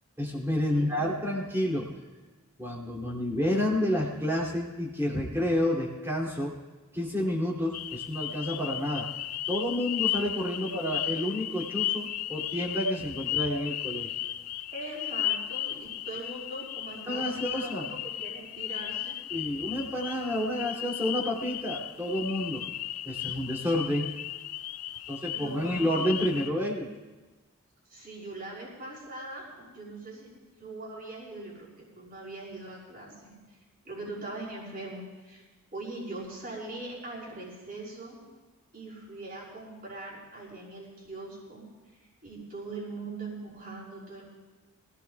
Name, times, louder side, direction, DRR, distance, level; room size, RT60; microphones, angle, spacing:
voice 1, 0.2-1.9 2.6-6.6 6.9-9.1 9.5-14.1 17.1-17.9 19.3-22.6 23.0-24.1 25.1-26.9, left 1 dB, 10° right, -3 dB, 2.7 m, -29 dB
voice 2, 0.7-1.1 10.6-11.1 14.7-19.2 25.3-26.1 27.9-30.3 30.6-33.6 33.8-35.4 35.7-38.2 38.7-41.6 42.2-44.3, right 2 dB, 40° right, -4 dB, 5.5 m, -41 dB
sound 1, 7.7-26.5, left 12 dB, 90° left, 0.5 m, -35 dB
25.0 x 17.0 x 2.3 m, 1.3 s
head